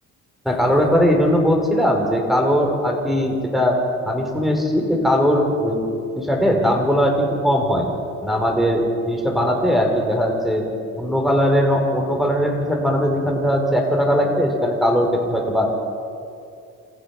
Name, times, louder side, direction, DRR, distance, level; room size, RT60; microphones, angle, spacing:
voice 1, 0.4-3.8 4.0-5.8 6.1-7.9 8.2-10.7 10.9-15.7, equal, ahead, 1 dB, 5.2 m, -19 dB
28.0 x 15.0 x 6.2 m, 2.4 s
cardioid pair, 90°, 30 cm